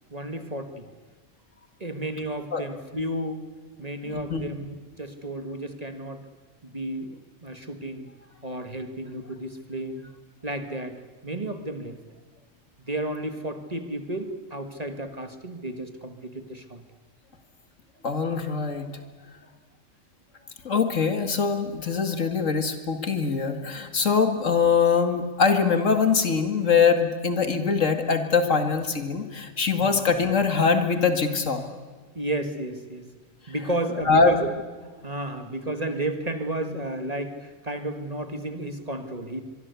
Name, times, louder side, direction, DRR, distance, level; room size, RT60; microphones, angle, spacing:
voice 1, 0.1-0.9 1.8-3.5 3.8-6.2 6.6-7.2 7.4-8.2 8.4-10.1 10.4-12.0 12.8-16.8 20.4-20.5 29.7-30.0 32.2-33.1 33.5-34.5 35.0-39.4, right 1 dB, 30° right, 7 dB, 1.8 m, -32 dB
voice 2, 4.0-4.4 18.0-19.0 20.6-31.6 34.1-34.3, left 5 dB, 65° left, 7 dB, 2.4 m, -23 dB
24.0 x 23.5 x 8.3 m, 1.4 s
omnidirectional pair, 1.4 m